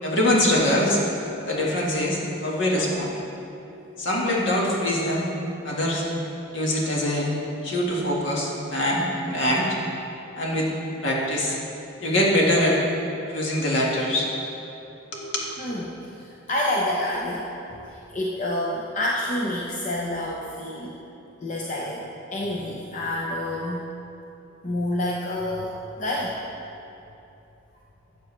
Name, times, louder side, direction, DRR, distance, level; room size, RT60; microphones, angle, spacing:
voice 1, 0.0-1.0 1.4-3.1 4.0-5.3 5.6-6.0 6.5-7.3 7.6-9.8 10.3-10.7 11.0-11.6 12.0-12.8 13.3-14.3 15.1-15.5, left 1 dB, 60° left, -3 dB, 1.6 m, -23 dB
voice 2, 15.6-17.5 17.9-21.0 21.4-22.0 22.3-23.9 24.6-26.4, left 1 dB, 35° left, -4 dB, 0.6 m, -28 dB
12.5 x 7.7 x 3.2 m, 2.9 s
head